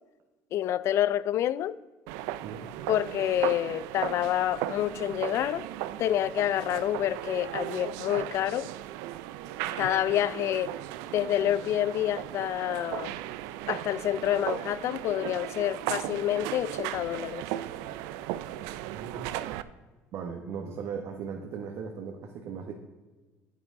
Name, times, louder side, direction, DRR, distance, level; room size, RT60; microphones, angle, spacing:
voice 1, 0.5-1.8 2.9-5.6 6.0-8.7 9.8-10.8 11.1-13.1 13.7-17.5, left 12 dB, 55° left, 0.4 m, -28 dB
sound 1, 2.1-19.6, right 14 dB, 85° right, 0.4 m, -36 dB
voice 2, 18.9-19.3 20.1-22.7, right 6 dB, 60° right, 1.1 m, -37 dB
9.4 x 8.8 x 3.7 m
cardioid pair, 110°, 6 cm